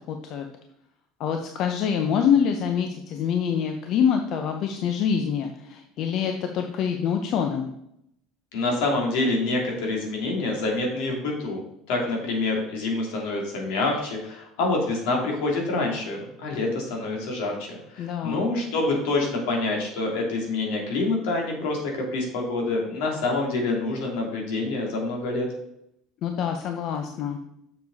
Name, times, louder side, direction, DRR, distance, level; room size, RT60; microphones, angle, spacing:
voice 1, 0.1-0.5 1.2-7.7 18.0-18.4 26.2-27.4, left 7 dB, 50° left, 5 dB, 0.7 m, -25 dB
voice 2, 8.5-11.6 11.9-25.5, left 2 dB, 80° left, 0 dB, 2.8 m, -26 dB
7.1 x 6.9 x 4.1 m, 0.77 s
cardioid pair, 155°, 0 cm